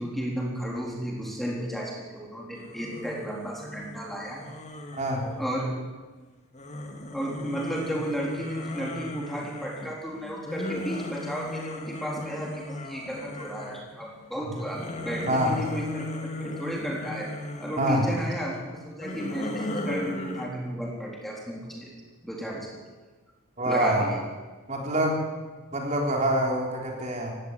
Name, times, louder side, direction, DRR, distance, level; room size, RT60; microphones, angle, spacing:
voice 1, 0.0-4.4 5.4-5.7 7.1-17.3 17.6-21.9 22.2-22.8 23.6-24.2, equal, ahead, -2 dB, 3.7 m, -33 dB
sound 1, 2.5-5.9 6.5-14.0 14.4-18.3 18.9-20.5, left 1 dB, 30° left, 2.5 m, -37 dB
voice 2, 4.9-5.3 15.3-15.6 17.8-18.0 23.6-24.1 24.7-25.2 25.7-27.3, right 1 dB, 35° right, 0 dB, 3.9 m, -25 dB
17.5 x 16.5 x 9.9 m, 1.3 s
head